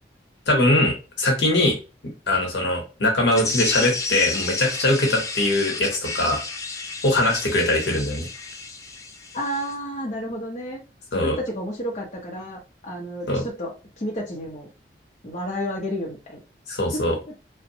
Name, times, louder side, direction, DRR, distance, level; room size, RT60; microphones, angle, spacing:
voice 1, 0.5-1.8 2.3-6.4 7.0-8.3 11.1-11.4 13.3-13.4 16.7-17.2, left 1 dB, 75° left, 1 dB, 0.9 m, -21 dB
sound 1, 3.3-9.7, left 3 dB, 20° left, 0.3 m, -32 dB
voice 2, 9.3-10.8 11.1-14.7 15.2-16.4 16.9-17.0, equal, 40° left, -2 dB, 0.7 m, -31 dB
2.5 x 2.2 x 2.7 m, 0.30 s
head